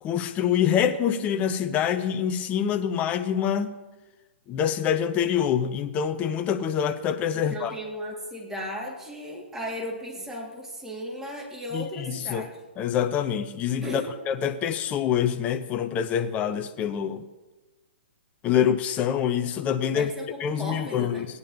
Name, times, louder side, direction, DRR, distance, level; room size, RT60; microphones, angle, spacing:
voice 1, 0.0-3.7 4.5-7.7 11.7-12.5 12.8-17.3 18.4-20.1 20.4-21.3, left 8 dB, 25° left, 0.6 m, -26 dB
voice 2, 7.3-12.5 13.8-14.1 19.9-20.3 20.6-21.2, equal, 5° right, 1.8 m, -35 dB
16.5 x 9.4 x 2.6 m
hypercardioid pair, 130°, 6 cm